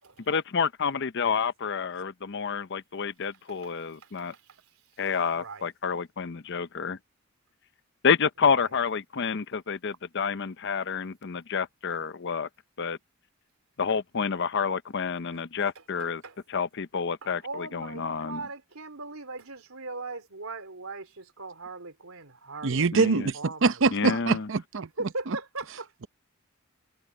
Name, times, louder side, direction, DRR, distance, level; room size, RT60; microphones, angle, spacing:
voice 1, 0.3-4.3 5.0-7.0 8.0-12.5 12.8-13.0 13.8-16.2 16.5-18.4 22.9-23.3 23.9-24.5, left 6 dB, 55° left, 0.7 m, -29 dB
voice 2, 4.0-4.6 5.3-5.7 8.5-8.7 16.0-16.4 17.2-24.2 25.0-25.9, right 3 dB, 85° right, 3.6 m, -40 dB
voice 3, 22.6-24.9 25.3-25.4, right 4 dB, 60° right, 0.7 m, -24 dB
head